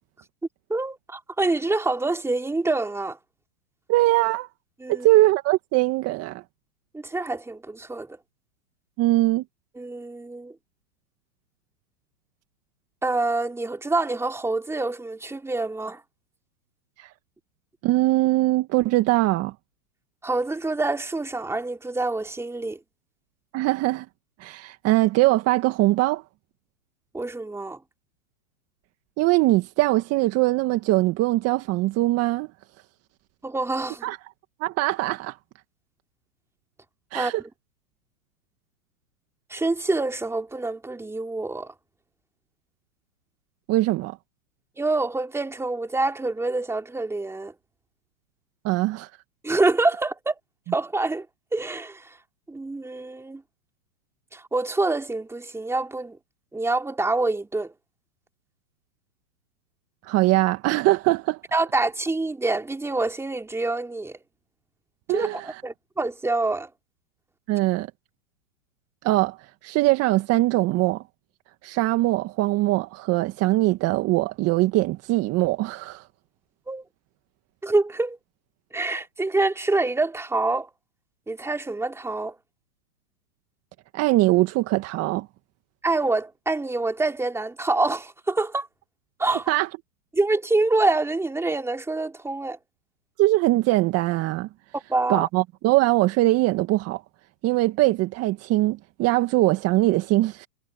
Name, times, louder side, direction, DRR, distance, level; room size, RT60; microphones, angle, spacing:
voice 1, 0.7-3.2 4.8-5.1 6.9-8.2 9.7-10.5 13.0-16.0 20.2-22.8 27.1-27.8 33.4-34.1 37.1-37.3 39.5-41.7 44.8-47.5 49.4-50.3 50.7-51.3 51.5-52.2 52.5-53.4 54.3-56.2 56.5-57.7 61.5-64.2 65.1-66.7 76.7-76.9 77.6-78.2 78.7-80.7 81.3-82.3 85.8-88.7 89.2-89.5 90.1-92.6 94.7-95.2, right 2 dB, 5° right, 3.2 m, -26 dB
voice 2, 3.9-4.5 4.9-6.4 9.0-9.4 17.0-17.1 17.8-19.5 23.5-24.1 24.4-26.2 29.2-32.5 34.0-34.2 34.6-35.4 37.1-37.4 43.7-44.2 48.6-49.1 60.0-61.4 65.1-65.5 67.5-67.9 69.0-69.4 69.6-71.0 71.6-76.0 83.9-85.3 89.5-89.7 93.2-94.5 95.1-97.0 97.4-100.5, right 18 dB, 35° right, 1.8 m, -22 dB
hypercardioid pair, 120°, 43 cm